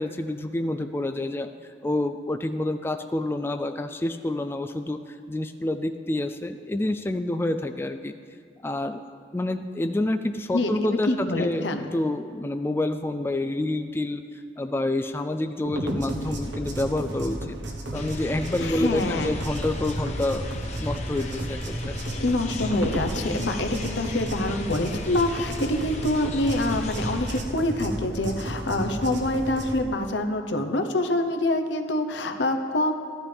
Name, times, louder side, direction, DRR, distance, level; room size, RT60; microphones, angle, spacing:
voice 1, 0.0-1.5 1.8-8.1 8.6-9.0 9.3-17.6 17.9-20.5 20.8-21.9, left 1 dB, 15° left, 8 dB, 0.3 m, -28 dB
voice 2, 10.5-11.9 18.6-19.3 22.2-32.9, left 1 dB, 90° left, 6 dB, 0.9 m, -26 dB
sound 1, 15.6-29.8, right 1 dB, 85° right, 1.3 m, -33 dB
sound 2, 17.9-27.4, left 2 dB, 40° left, 0.9 m, -36 dB
15.5 x 11.5 x 3.4 m, 2.1 s
head